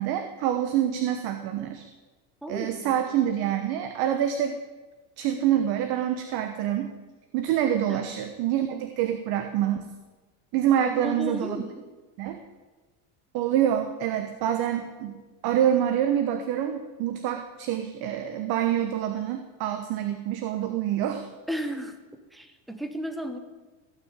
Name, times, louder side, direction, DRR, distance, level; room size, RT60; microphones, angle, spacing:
voice 1, 0.0-1.9 2.5-4.5 5.2-6.9 7.3-9.9 10.5-11.6 12.2-12.4 13.3-21.3, right 10 dB, 50° right, 7 dB, 1.1 m, -26 dB
voice 2, 2.4-3.0 7.9-8.0 10.8-11.8 21.5-21.9 22.3-23.4, equal, ahead, 6 dB, 0.9 m, -34 dB
16.5 x 6.2 x 8.9 m, 1.3 s
cardioid pair, 150°, 48 cm